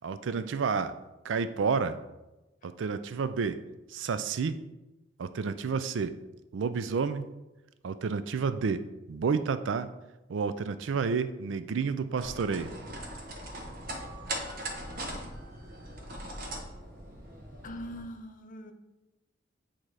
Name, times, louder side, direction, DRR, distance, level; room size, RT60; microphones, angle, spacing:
voice 1, 0.0-1.0 1.2-2.0 2.6-3.6 3.9-4.6 5.2-6.2 6.5-7.3 7.8-9.9 10.3-12.7, right 5 dB, 75° right, 12 dB, 0.4 m, -30 dB
sound 1, 12.2-18.0, right 1 dB, 50° right, 1.1 m, -40 dB
voice 2, 17.6-18.7, equal, 45° left, 6 dB, 0.6 m, -42 dB
8.6 x 2.9 x 4.7 m, 1.0 s
head